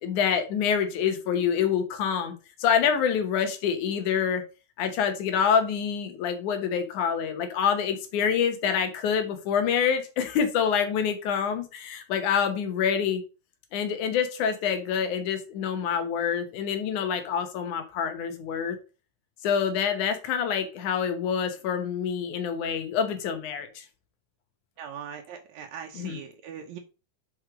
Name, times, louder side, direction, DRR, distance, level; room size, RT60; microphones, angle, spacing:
voice 1, 0.0-2.3 2.6-4.4 4.8-13.2 13.7-18.8 19.4-23.9 25.9-26.2, left 7 dB, 85° left, 8 dB, 2.6 m, -26 dB
voice 2, 24.8-26.8, right 8 dB, 75° right, 4 dB, 2.0 m, -40 dB
6.3 x 4.6 x 4.9 m, 0.32 s
omnidirectional pair, 3.4 m